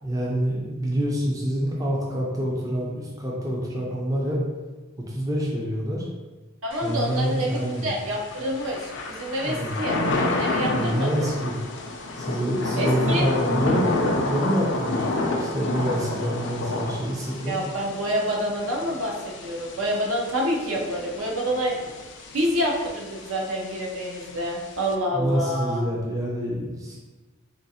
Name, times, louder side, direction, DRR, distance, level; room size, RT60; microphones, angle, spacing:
voice 1, 0.0-4.4 5.1-6.1 6.8-7.9 9.4-9.8 10.7-11.6 12.2-17.6 25.1-27.0, equal, 15° right, -4 dB, 0.4 m, -27 dB
voice 2, 6.6-10.0 10.3-11.2 12.7-13.3 17.5-21.8 22.3-25.8, equal, 70° right, -1 dB, 0.6 m, -27 dB
Thunder / Rain, 6.7-25.0, left 2 dB, 55° left, 0.4 m, -30 dB
3.7 x 2.4 x 2.7 m, 1.3 s
head